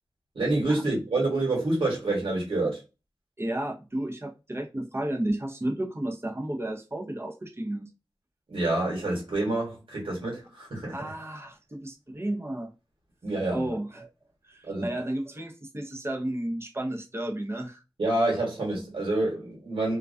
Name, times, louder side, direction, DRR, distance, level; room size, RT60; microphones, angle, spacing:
voice 1, 0.3-2.8 8.5-11.1 13.2-13.7 14.6-14.9 18.0-20.0, right 2 dB, 90° right, 1.1 m, -27 dB
voice 2, 3.4-7.9 10.9-12.7 13.5-14.1 14.4-17.8, right 1 dB, 30° right, 0.6 m, -32 dB
2.2 x 2.2 x 2.4 m
wide cardioid pair, 65°, 9 cm